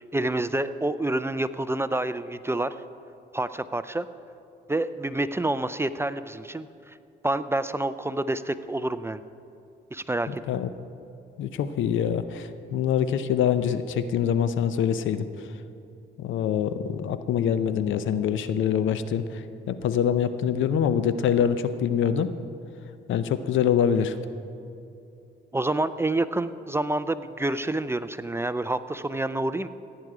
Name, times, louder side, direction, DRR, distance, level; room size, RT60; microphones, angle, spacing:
voice 1, 0.0-2.7 3.3-4.1 4.7-7.0 7.2-9.2 9.9-10.4 25.5-29.7, right 2 dB, 10° right, 13 dB, 0.4 m, -28 dB
voice 2, 10.3-10.7 11.4-15.3 16.2-22.3 23.1-24.2, left 8 dB, 75° left, 12 dB, 0.7 m, -25 dB
15.5 x 9.4 x 4.9 m, 2.6 s
cardioid pair, 90°, 20 cm